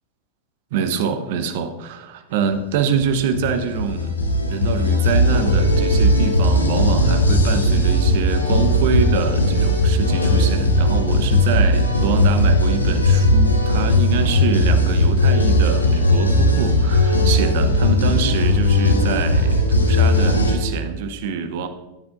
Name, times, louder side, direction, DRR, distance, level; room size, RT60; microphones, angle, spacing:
voice 1, 0.7-4.2 4.5-21.7, right 6 dB, 50° right, 8 dB, 1.0 m, -25 dB
sound 1, 2.9-20.6, left 1 dB, 80° left, 1.6 m, -17 dB
13.5 x 9.6 x 2.6 m, 0.98 s
figure-of-eight pair, 90°, 0 cm